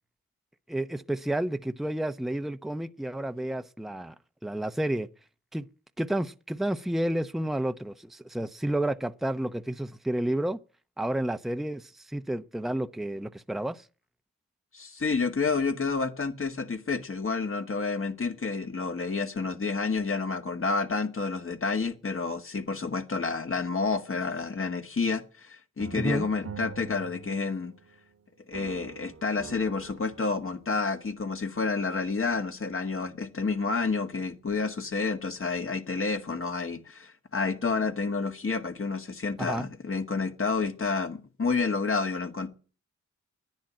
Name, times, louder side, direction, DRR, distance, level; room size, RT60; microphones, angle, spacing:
voice 1, 0.7-4.1 4.4-5.1 5.5-5.7 6.0-10.6 11.0-13.8 25.9-26.3 39.4-39.7, right 1 dB, ahead, 0.8 m, -30 dB
voice 2, 14.7-27.7 28.5-42.5, left 4 dB, 45° left, 1.9 m, -29 dB
sound 1, 25.8-28.1 28.5-30.8, right 6 dB, 55° right, 1.5 m, -45 dB
10.5 x 10.0 x 8.8 m
cardioid pair, 50°, 29 cm